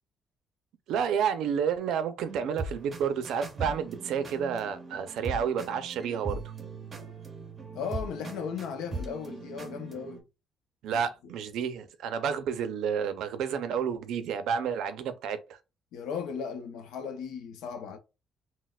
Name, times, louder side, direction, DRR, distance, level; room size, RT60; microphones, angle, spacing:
voice 1, 0.9-6.5 10.8-15.6, right 7 dB, 70° right, 0.5 m, -30 dB
sound 1, 2.2-10.2, right 3 dB, 20° right, 0.6 m, -40 dB
voice 2, 7.7-10.2 15.9-18.0, left 6 dB, 90° left, 0.6 m, -36 dB
4.1 x 2.0 x 2.3 m
cardioid pair, 160°, 0 cm